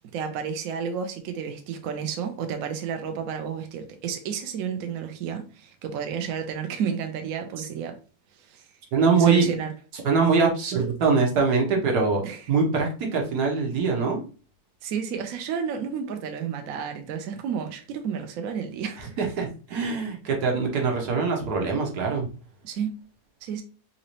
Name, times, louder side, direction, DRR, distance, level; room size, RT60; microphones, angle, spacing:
voice 1, 0.1-8.0 8.4-8.7 9.2-9.7 12.2-12.4 14.8-19.0 22.6-22.9 23.4-23.6, right 7 dB, 70° right, 1.0 m, -31 dB
voice 2, 8.9-9.5 10.0-12.2 12.5-14.2 19.0-22.3, right 4 dB, 90° right, 1.5 m, -23 dB
4.0 x 2.7 x 2.9 m
omnidirectional pair, 1.6 m